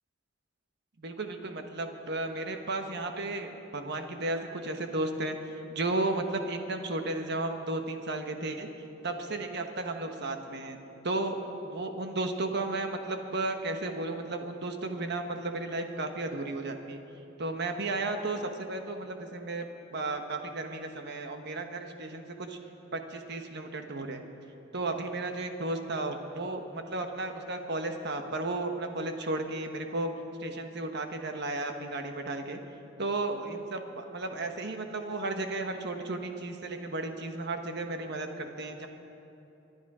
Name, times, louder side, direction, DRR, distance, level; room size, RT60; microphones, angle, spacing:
voice 1, 1.0-5.4 5.7-8.7 9.0-10.8 11.0-11.3 11.6-17.0 17.4-19.7 19.9-22.6 22.9-24.2 24.7-30.1 30.4-32.6 33.0-38.9, right 2 dB, 60° right, 5 dB, 1.2 m, -34 dB
23.5 x 10.5 x 4.9 m, 2.9 s
head